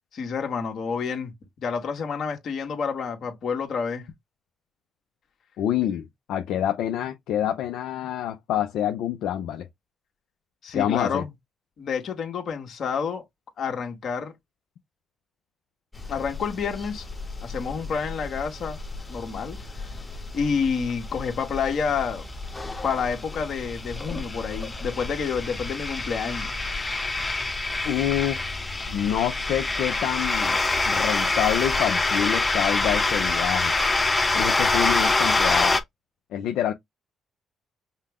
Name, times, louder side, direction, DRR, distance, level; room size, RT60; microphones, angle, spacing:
voice 1, 0.1-1.3 1.6-4.1 10.6-11.3 11.8-13.2 13.6-14.3 16.1-17.0 17.4-18.8 19.1-19.6 19.8-19.9 20.3-22.3 22.8-26.5, left 6 dB, 60° left, 1.6 m, -29 dB
voice 2, 5.6-9.7 10.7-11.2 27.8-28.5 28.9-30.6 30.9-33.7 34.3-35.8 36.3-36.7, left 11 dB, 85° left, 0.6 m, -27 dB
sound 1, 15.9-35.8, left 3 dB, 20° left, 0.9 m, -27 dB
5.6 x 2.2 x 3.5 m
cardioid pair, 90°, 0 cm